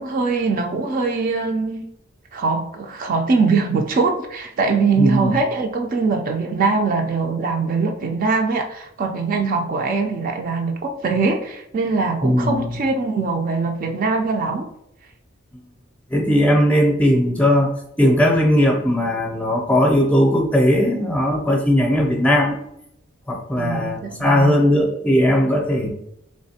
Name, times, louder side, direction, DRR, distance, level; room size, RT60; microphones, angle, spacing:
voice 1, 0.0-1.8 2.3-14.7 23.6-24.5, right 4 dB, 45° right, 3 dB, 0.3 m, -22 dB
voice 2, 5.0-5.4 12.2-12.8 16.1-17.7 18.0-22.6 23.3-25.9, equal, 5° left, 1 dB, 0.6 m, -18 dB
3.5 x 3.2 x 2.7 m, 0.78 s
head